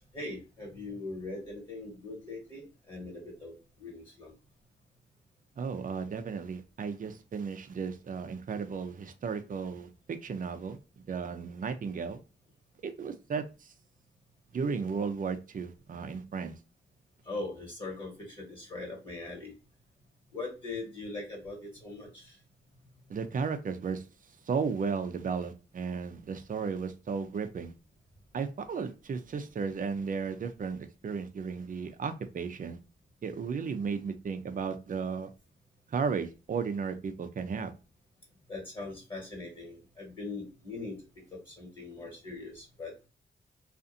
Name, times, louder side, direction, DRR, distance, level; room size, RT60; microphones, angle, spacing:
voice 1, 0.0-4.3 17.3-19.5 20.3-22.3 38.5-41.0 41.3-42.9, left 3 dB, 25° left, 1.5 m, -41 dB
voice 2, 5.6-10.8 11.1-12.2 12.8-13.7 14.5-16.5 23.1-24.0 24.5-27.7 28.3-32.8 33.2-35.3 35.9-37.7, right 5 dB, 45° right, 0.5 m, -34 dB
2.5 x 2.5 x 2.5 m
cardioid pair, 75°, 19 cm